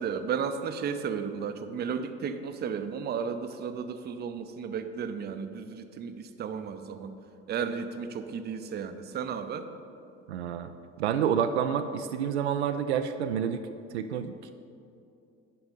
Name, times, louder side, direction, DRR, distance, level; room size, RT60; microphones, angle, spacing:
voice 1, 0.0-7.1 7.5-9.7, right 6 dB, 30° right, 9 dB, 0.6 m, -34 dB
voice 2, 10.3-10.7 11.0-14.5, right 8 dB, 75° right, 8 dB, 0.5 m, -29 dB
9.9 x 5.3 x 5.4 m, 2.6 s
figure-of-eight pair, 60°, 35 cm